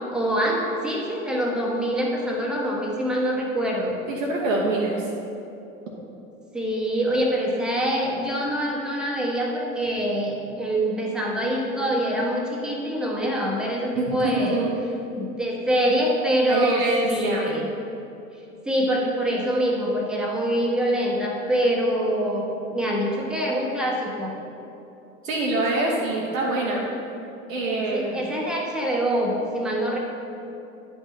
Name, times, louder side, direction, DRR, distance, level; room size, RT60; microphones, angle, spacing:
voice 1, 0.0-4.0 6.5-14.6 15.1-17.7 18.6-24.3 27.9-30.0, equal, ahead, -2 dB, 1.0 m, -25 dB
voice 2, 4.1-5.0 14.0-14.7 16.5-17.4 25.2-26.9 27.5-28.3, right 2 dB, 70° right, -4 dB, 1.0 m, -25 dB
9.6 x 5.4 x 3.1 m, 2.8 s
figure-of-eight pair, 80°, 41 cm